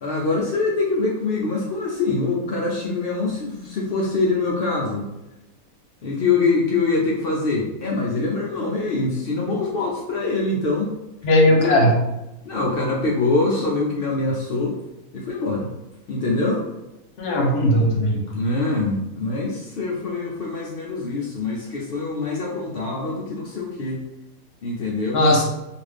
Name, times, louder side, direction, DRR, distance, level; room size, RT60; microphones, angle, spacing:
voice 1, 0.0-5.0 6.0-10.9 11.6-11.9 12.4-14.8 15.1-15.7 16.1-16.6 18.3-24.0 24.6-25.2, left 3 dB, 75° left, -2 dB, 0.5 m, -24 dB
voice 2, 11.2-11.9 17.2-18.2 25.1-25.5, left 1 dB, 55° left, -1 dB, 0.8 m, -17 dB
2.5 x 2.4 x 3.3 m, 0.95 s
omnidirectional pair, 1.5 m